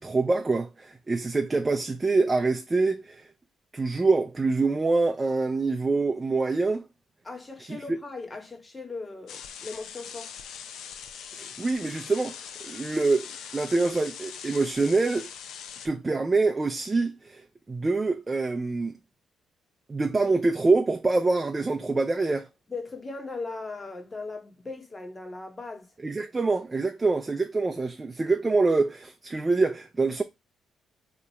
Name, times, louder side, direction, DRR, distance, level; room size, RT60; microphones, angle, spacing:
voice 1, 0.0-3.3 3.7-6.9 7.6-8.0 11.3-12.4 12.6-15.3 15.8-18.9 19.9-22.5 26.0-30.2, right 3 dB, 25° right, 0.5 m, -25 dB
voice 2, 7.2-10.3 22.7-25.9, left 3 dB, 25° left, 1.0 m, -38 dB
sound 1, 9.3-15.9, left 8 dB, 75° left, 0.4 m, -41 dB
2.9 x 2.5 x 4.2 m
cardioid pair, 90°, 0 cm